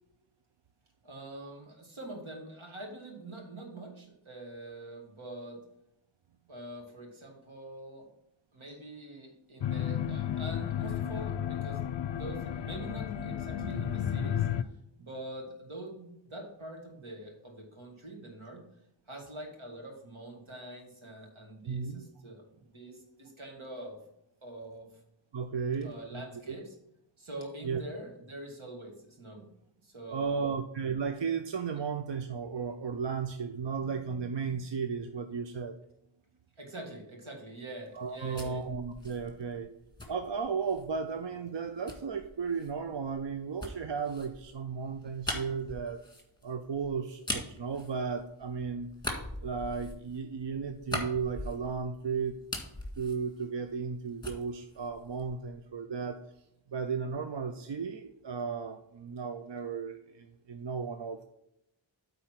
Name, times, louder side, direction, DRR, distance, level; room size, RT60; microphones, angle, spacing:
voice 1, 1.0-5.6 6.5-8.1 8.5-14.5 15.0-18.6 19.1-24.0 24.4-24.9 25.8-26.8 27.2-29.5 29.8-30.6 36.6-38.6, right 1 dB, 80° right, 0 dB, 2.2 m, -45 dB
sound 1, 9.6-14.6, left 9 dB, 60° left, 0.5 m, -33 dB
voice 2, 21.7-22.0 25.3-26.6 27.6-27.8 30.1-35.7 37.9-39.7 40.1-46.0 46.4-48.9 49.4-52.4 53.0-56.2 56.7-61.2, right 5 dB, 65° right, 7 dB, 0.6 m, -35 dB
sound 2, 38.0-41.0 41.9-48.5 48.9-52.0 52.3-54.0 54.2-55.5, left 1 dB, 10° left, 1.8 m, -41 dB
9.0 x 4.0 x 5.8 m, 0.81 s
wide cardioid pair, 75°, 47 cm